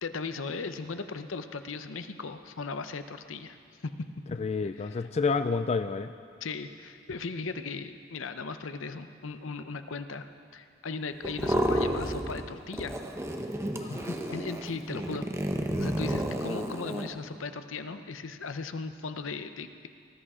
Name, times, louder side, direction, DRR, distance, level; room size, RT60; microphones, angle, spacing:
voice 1, 0.0-3.6 3.8-3.9 4.8-5.1 6.4-10.3 10.5-13.0 14.3-15.3 15.8-19.9, left 4 dB, 75° left, 9 dB, 0.7 m, -37 dB
voice 2, 4.4-6.1 13.8-14.2, left 4 dB, 35° left, 9 dB, 0.4 m, -29 dB
sound 1, 11.2-12.5 12.7-17.1, right 1 dB, 15° right, 0.9 m, -31 dB
19.5 x 13.5 x 5.0 m, 2.4 s
head